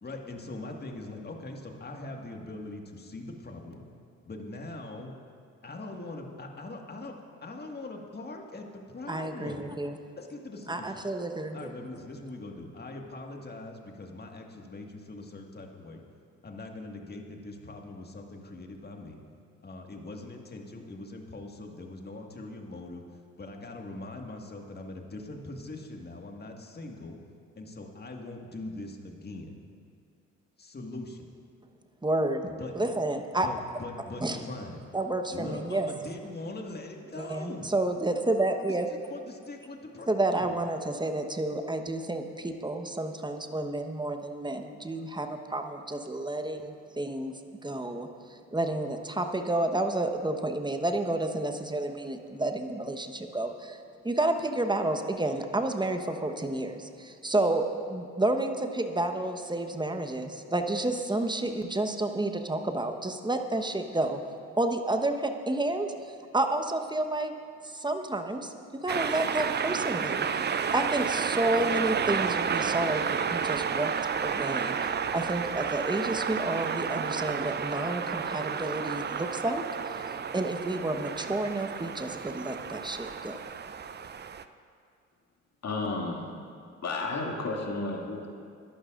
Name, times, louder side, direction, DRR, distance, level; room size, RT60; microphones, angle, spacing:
voice 1, 0.0-3.9 4.2-5.1 5.6-7.2 7.4-9.7 10.2-11.0 11.5-16.0 16.4-19.2 19.6-23.1 23.4-27.2 27.6-29.6 30.6-31.3 32.5-32.7 33.4-34.8 35.3-37.7 38.7-40.5, left 2 dB, 25° left, 2 dB, 1.9 m, -42 dB
voice 2, 9.1-10.0 10.7-11.7 32.0-33.5 34.2-34.4 34.9-35.9 37.2-38.9 40.1-47.3 47.6-64.2 64.6-67.3 67.6-70.4 70.7-73.9 74.2-80.0 80.3-83.4, right 2 dB, 10° right, 5 dB, 1.2 m, -30 dB
sound 1, 68.9-84.4, right 6 dB, 30° right, 0.6 m, -31 dB
voice 3, 85.6-86.2 86.8-88.3, left 3 dB, 45° left, -1 dB, 2.6 m, -32 dB
22.0 x 11.5 x 2.6 m, 2.3 s
hypercardioid pair, 50°, 37 cm